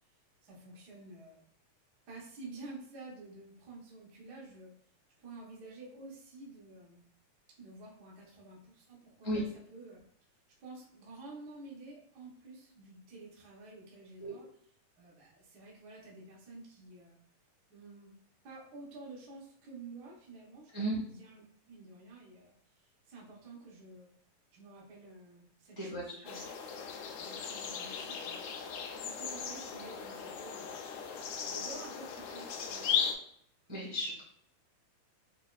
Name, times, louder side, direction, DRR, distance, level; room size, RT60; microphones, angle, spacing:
voice 1, 0.4-1.4 2.1-4.7 5.2-7.0 7.6-10.0 10.6-14.5 15.0-17.2 17.7-18.1 18.4-24.1 24.5-26.4 27.2-28.5 29.0-33.1, right 3 dB, 75° right, -4 dB, 0.9 m, -50 dB
voice 2, 25.8-26.4 33.7-34.2, right 1 dB, 25° right, -7 dB, 0.5 m, -35 dB
sound 1, 26.3-33.1, left 7 dB, 80° left, 1.7 m, -37 dB
5.8 x 2.3 x 2.4 m, 0.67 s
omnidirectional pair, 3.4 m